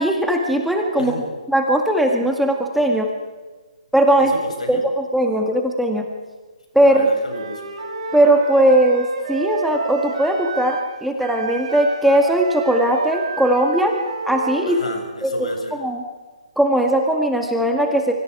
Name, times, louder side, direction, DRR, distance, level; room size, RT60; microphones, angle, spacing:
voice 1, 0.0-3.1 3.9-4.3 4.7-6.1 6.7-7.1 8.1-14.0 14.3-14.8 15.2-15.3 15.7-16.0 16.6-18.1, right 1 dB, ahead, 2 dB, 1.9 m, -18 dB
voice 2, 1.0-1.3 4.2-4.8 6.9-7.6 14.7-15.7, left 2 dB, 75° left, 3 dB, 7.0 m, -31 dB
Wind instrument woodwind instrument, 7.3-10.9 11.2-15.1, right 4 dB, 60° right, 6.0 m, -30 dB
25.5 x 25.0 x 4.8 m, 1.3 s
figure-of-eight pair, 140°, 4 cm